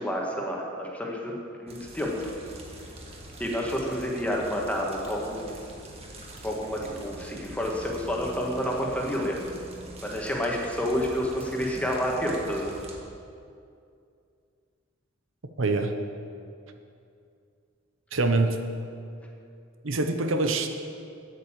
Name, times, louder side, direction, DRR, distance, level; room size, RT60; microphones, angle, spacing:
voice 1, 0.0-1.3 1.6-2.3 3.4-5.5 6.4-9.4 10.0-12.7, equal, 5° left, -1 dB, 1.6 m, -29 dB
sound 1, 1.7-13.0, right 1 dB, 30° right, 1.6 m, -44 dB
voice 2, 15.6-15.9 18.1-18.6 19.8-20.7, right 3 dB, 70° right, 6 dB, 0.8 m, -24 dB
9.5 x 9.0 x 7.4 m, 2.4 s
head